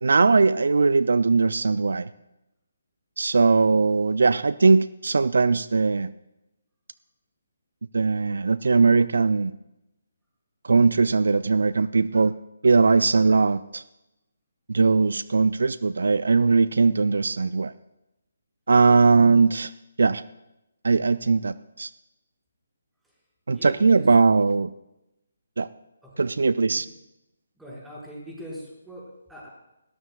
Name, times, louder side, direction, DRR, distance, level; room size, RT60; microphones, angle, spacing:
voice 1, 0.0-2.1 3.2-6.1 7.9-9.5 10.6-12.3 12.6-13.8 14.7-17.7 18.7-19.7 20.0-20.2 20.8-21.9 23.5-24.7 25.6-25.7 26.2-26.9, right 4 dB, 70° right, 16 dB, 0.4 m, -20 dB
voice 2, 23.5-24.1 26.0-26.3 26.7-26.9 27.6-29.5, equal, 5° right, -6 dB, 5.4 m, -42 dB
20.0 x 17.5 x 2.4 m, 0.91 s
figure-of-eight pair, 145°, 0 cm